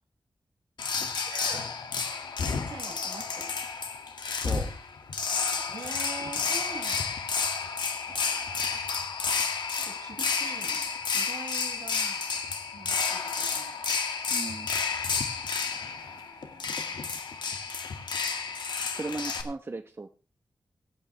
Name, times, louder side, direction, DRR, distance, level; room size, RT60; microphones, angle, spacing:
sound 1, 0.8-19.4, left 5 dB, 85° left, 2.1 m, -31 dB
voice 1, 1.3-1.7 2.2-2.3 2.7-3.5 5.3-7.2 8.1-8.9 9.7-12.4 12.7-13.8 15.7-16.6, right 4 dB, 65° right, 0 dB, 6.7 m, -45 dB
voice 2, 14.3-14.7 16.0-16.1 19.0-20.1, right 3 dB, 30° right, 7 dB, 0.9 m, -36 dB
26.0 x 9.0 x 3.3 m, 0.34 s
wide cardioid pair, 140°, 8 cm